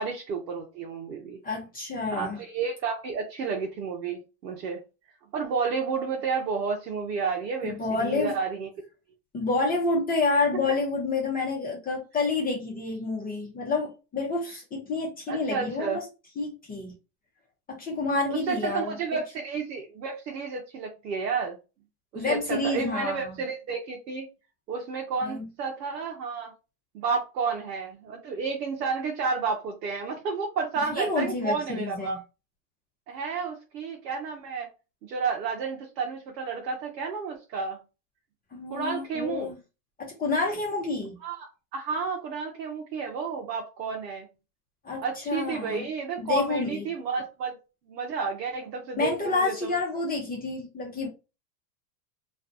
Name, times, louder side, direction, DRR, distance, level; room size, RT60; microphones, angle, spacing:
voice 1, 0.0-1.4 2.1-4.8 5.3-8.7 15.3-16.0 18.3-21.6 22.1-24.3 24.7-26.5 26.9-32.2 33.1-34.7 35.0-37.8 38.7-39.5 41.2-44.3 45.0-47.6 47.9-49.8, right 5 dB, 85° right, 0.8 m, -31 dB
voice 2, 1.4-2.4 7.6-8.4 9.3-16.0 16.4-16.9 17.7-19.2 22.1-23.3 25.2-25.5 30.9-32.2 38.5-39.5 40.0-41.2 44.8-45.8 46.2-46.8 49.0-51.1, left 3 dB, 20° left, 0.8 m, -29 dB
2.5 x 2.2 x 2.6 m
hypercardioid pair, 110°, 49 cm